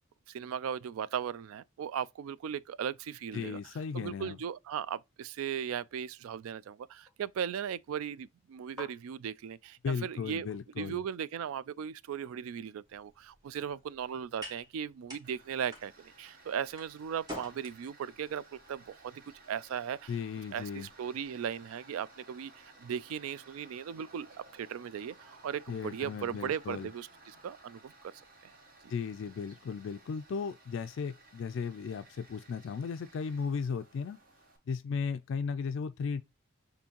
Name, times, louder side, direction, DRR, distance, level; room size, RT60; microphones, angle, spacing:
voice 1, 0.3-3.6 3.9-10.5 10.8-20.1 20.5-24.3 24.5-27.9, right 8 dB, 90° right, 0.3 m, -37 dB
voice 2, 3.3-4.4 9.8-11.0 20.1-20.9 25.7-26.9 28.9-34.2 34.7-36.2, left 5 dB, 60° left, 0.3 m, -36 dB
sound 1, 5.7-11.6, left 3 dB, ahead, 0.8 m, -57 dB
sound 2, 12.8-21.2, equal, 20° right, 1.4 m, -51 dB
Tools, 15.2-34.6, right 2 dB, 45° right, 1.0 m, -58 dB
6.9 x 2.7 x 2.8 m
head